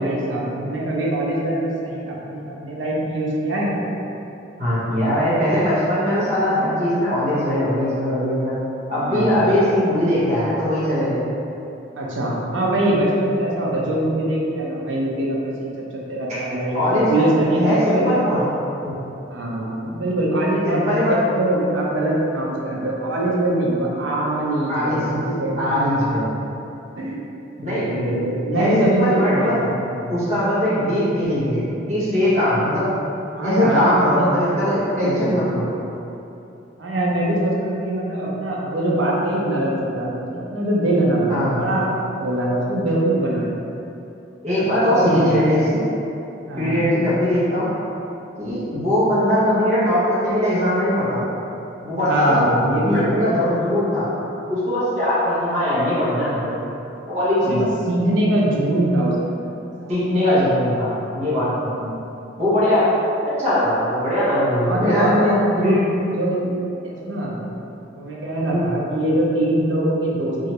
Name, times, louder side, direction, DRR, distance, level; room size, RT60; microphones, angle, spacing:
voice 1, 0.0-3.9 9.0-9.5 12.0-18.5 19.3-26.1 27.0-27.2 27.6-29.9 33.3-34.2 35.0-35.5 36.8-43.8 44.5-45.3 46.5-46.8 52.0-53.1 57.5-59.9 61.7-62.0 64.6-66.5 66.8-67.4 67.9-70.5, right 1 dB, 80° right, -4 dB, 0.6 m, -23 dB
voice 2, 4.6-8.6 8.9-11.3 16.7-18.4 18.8-19.0 20.7-21.2 24.7-25.2 25.6-26.3 27.6-27.9 28.5-29.6 30.1-32.8 33.4-35.7 41.3-41.7 44.4-45.8 46.6-47.7 48.4-51.2 51.8-52.4 52.9-54.1 54.5-56.5 57.0-57.7 59.9-61.7 62.4-62.9 63.4-65.1 65.6-65.9 68.5-68.7, left 1 dB, 35° right, -11 dB, 0.8 m, -20 dB
3.0 x 2.4 x 2.8 m, 2.9 s
head